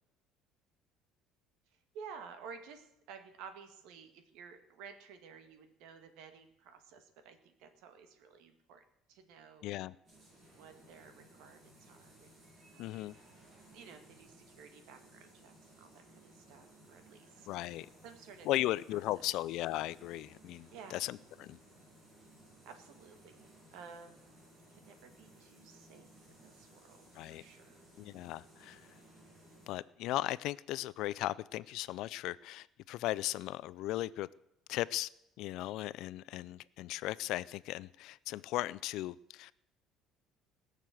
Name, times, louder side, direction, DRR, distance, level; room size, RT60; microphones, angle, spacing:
voice 1, 1.7-8.8 9.1-9.7 10.5-12.3 12.7-13.0 13.7-17.5 18.0-18.6 18.9-19.3 20.7-21.0 22.6-24.2 24.7-27.8, right 6 dB, 70° right, 1.9 m, -53 dB
voice 2, 9.6-9.9 12.8-13.2 17.5-17.9 18.5-21.6 27.2-27.4 28.0-28.8 29.7-34.3 34.7-35.1 35.4-39.5, left 16 dB, 60° left, 0.4 m, -37 dB
sound 1, 10.0-29.7, right 1 dB, 25° right, 7.5 m, -60 dB
19.0 x 6.7 x 7.7 m
cardioid pair, 160°, 0 cm